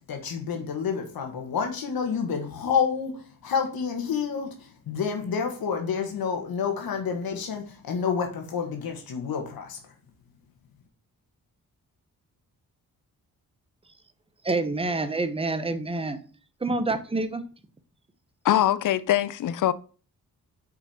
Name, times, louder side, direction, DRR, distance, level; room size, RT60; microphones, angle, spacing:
voice 1, 0.0-9.8, left 6 dB, 80° left, 1.6 m, -29 dB
voice 2, 14.4-16.2 16.6-17.4, right 2 dB, 15° right, 0.9 m, -27 dB
voice 3, 18.4-19.7, left 12 dB, 60° left, 0.6 m, -22 dB
6.9 x 5.2 x 4.3 m
wide cardioid pair, 115°, 35 cm